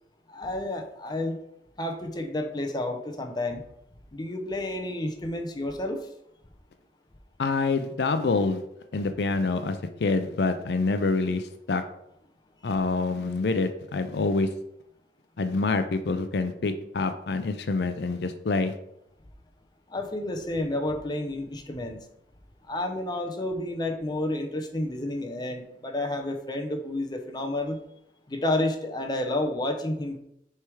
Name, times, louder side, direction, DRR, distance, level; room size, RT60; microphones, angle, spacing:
voice 1, 0.3-1.4 1.8-3.6 4.1-6.1 12.6-12.7 19.9-22.1 22.7-27.8 28.3-30.2, left 1 dB, 25° left, 4 dB, 0.6 m, -30 dB
voice 2, 7.4-8.6 8.9-11.8 12.6-14.5 15.4-18.7, left 3 dB, 70° left, 9 dB, 0.5 m, -26 dB
6.5 x 3.4 x 4.6 m, 0.78 s
head